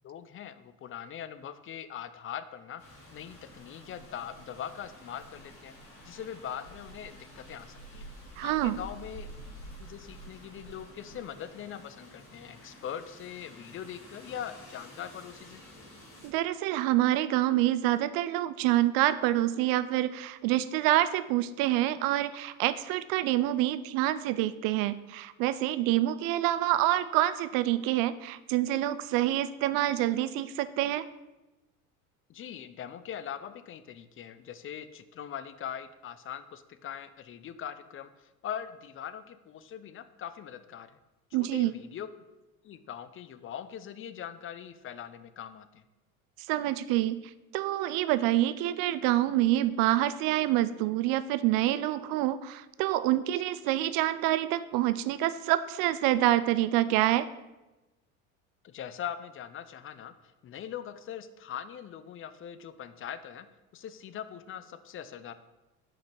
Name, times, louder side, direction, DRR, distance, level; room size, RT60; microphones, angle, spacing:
voice 1, 0.0-2.8 3.1-5.7 6.0-8.1 8.4-9.4 9.8-15.6 32.3-41.0 41.3-42.1 42.6-45.8 58.6-60.1 60.4-63.5 63.7-65.3, left 9 dB, 30° left, 12 dB, 0.5 m, -41 dB
Rain, 2.8-16.3, equal, 85° left, 2.7 m, -49 dB
voice 2, 8.4-8.8 16.2-31.1 41.3-41.7 46.5-57.3, right 14 dB, 55° right, 15 dB, 0.5 m, -27 dB
5.9 x 5.0 x 5.2 m, 1.0 s
hypercardioid pair, 70°, 42 cm